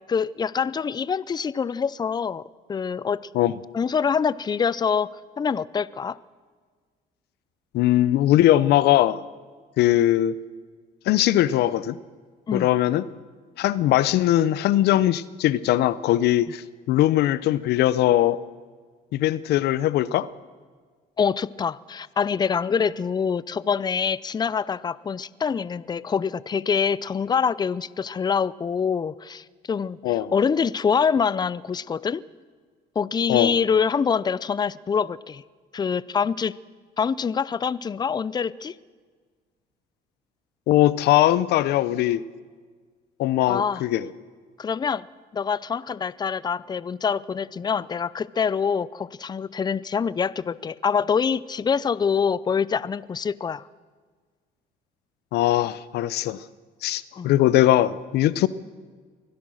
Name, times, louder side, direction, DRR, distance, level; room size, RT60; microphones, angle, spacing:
voice 1, 0.1-2.4 2.7-3.3 3.7-6.2 12.5-12.7 21.2-32.2 33.0-35.4 35.7-36.5 37.0-38.7 43.5-43.8 44.6-45.1 45.3-53.6 57.2-57.3, left 6 dB, 25° left, 20 dB, 0.5 m, -25 dB
voice 2, 7.7-9.2 9.8-10.3 11.1-12.0 12.5-13.0 13.6-18.4 19.1-20.3 30.0-30.3 33.3-33.5 40.7-42.2 43.2-44.1 55.3-56.4 56.8-58.5, left 13 dB, 75° left, 18 dB, 0.7 m, -20 dB
24.5 x 16.5 x 6.4 m, 1.5 s
cardioid pair, 110°, 17 cm